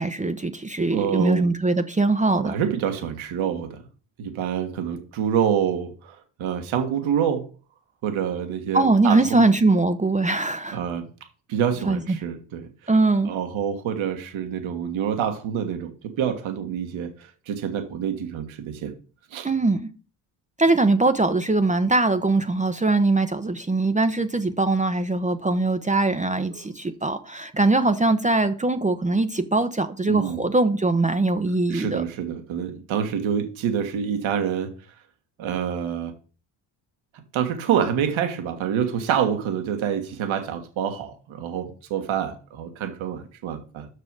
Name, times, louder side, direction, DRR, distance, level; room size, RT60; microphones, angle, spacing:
voice 1, 0.0-2.6 8.7-10.8 11.9-12.2 12.9-13.3 19.4-19.9 20.6-32.0, right 2 dB, 15° right, 0.7 m, -21 dB
voice 2, 0.9-1.5 2.4-3.8 4.2-7.4 8.0-9.5 10.7-11.1 11.5-12.7 13.2-18.9 19.3-19.5 26.5-26.6 30.1-30.4 31.7-34.7 35.4-36.1 37.3-43.9, right 8 dB, 70° right, 1.7 m, -27 dB
6.7 x 6.2 x 4.7 m
supercardioid pair, 65°, 49 cm